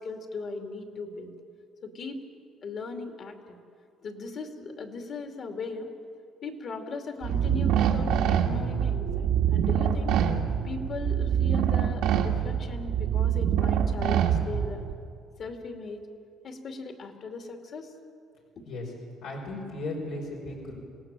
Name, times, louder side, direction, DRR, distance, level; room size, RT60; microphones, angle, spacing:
voice 1, 0.0-1.3 1.8-2.2 2.6-3.6 4.0-5.9 6.4-10.1 10.6-14.8 15.4-16.0 16.4-17.9, left 3 dB, 50° left, 4 dB, 2.6 m, -38 dB
sound 1, 7.2-14.9, right 8 dB, 90° right, 1.7 m, -25 dB
voice 2, 19.2-20.7, left 2 dB, 85° left, -2 dB, 5.3 m, -36 dB
27.5 x 18.5 x 7.6 m, 2.3 s
cardioid pair, 125°, 0 cm